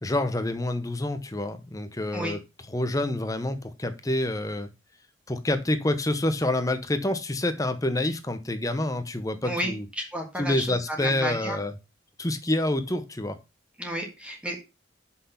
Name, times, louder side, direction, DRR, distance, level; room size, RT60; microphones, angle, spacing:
voice 1, 0.0-2.4 2.7-4.7 5.3-9.8 10.4-11.7 12.2-13.4, left 1 dB, 15° left, 0.8 m, -27 dB
voice 2, 9.4-11.6 13.8-14.6, equal, 5° right, 1.6 m, -32 dB
6.3 x 5.8 x 5.6 m
head